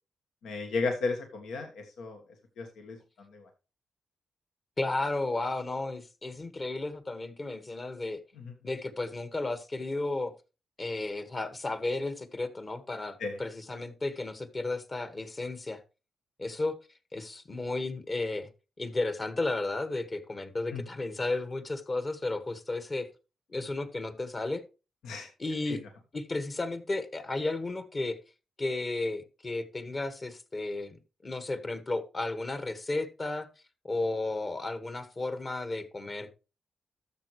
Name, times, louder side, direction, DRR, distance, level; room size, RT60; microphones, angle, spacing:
voice 1, 0.4-2.2 2.6-3.5 8.4-8.5 13.2-13.4 20.7-20.8 25.0-25.3 25.7-25.8, left 3 dB, 80° left, 3 dB, 1.4 m, -34 dB
voice 2, 4.8-8.2 8.6-10.3 10.8-15.8 16.4-16.8 17.1-18.5 18.8-23.1 23.5-24.6 25.4-25.8 26.1-28.2 28.6-33.5 33.8-36.3, left 2 dB, 40° left, 11 dB, 1.6 m, -33 dB
12.5 x 6.8 x 3.1 m, 0.30 s
supercardioid pair, 60°, 0 cm